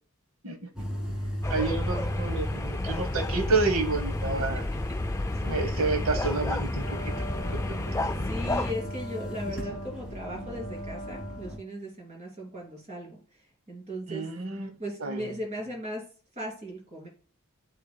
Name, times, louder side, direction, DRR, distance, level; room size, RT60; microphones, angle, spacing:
sound 1, 0.7-11.6, equal, 5° right, 1.6 m, -37 dB
sound 2, 1.4-8.7, left 2 dB, 15° left, 0.3 m, -31 dB
voice 1, 1.5-4.6 5.4-7.1 7.5-7.9 9.6-9.8 14.1-14.7 15.0-15.3, right 3 dB, 65° right, 1.0 m, -30 dB
Wind instrument woodwind instrument, 6.7-11.9, equal, 30° left, 1.6 m, -42 dB
voice 2, 8.2-14.2 14.8-16.0 16.3-17.1, equal, 30° right, 2.8 m, -37 dB
11.5 x 3.8 x 2.2 m
head